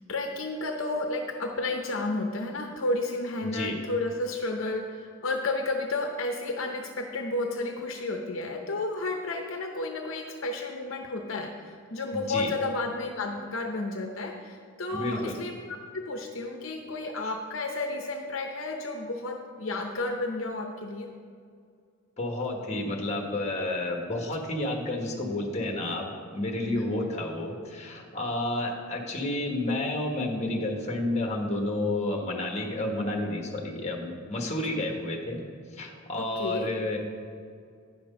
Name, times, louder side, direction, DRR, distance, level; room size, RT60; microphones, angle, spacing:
voice 1, 0.1-21.1 26.6-26.9 32.7-33.0 36.2-36.7, left 2 dB, 70° left, 3 dB, 0.7 m, -32 dB
voice 2, 3.4-3.8 12.1-12.5 14.9-15.4 22.2-35.4 35.7-37.0, left 2 dB, 35° left, 2 dB, 1.2 m, -30 dB
9.7 x 6.0 x 5.3 m, 2.2 s
head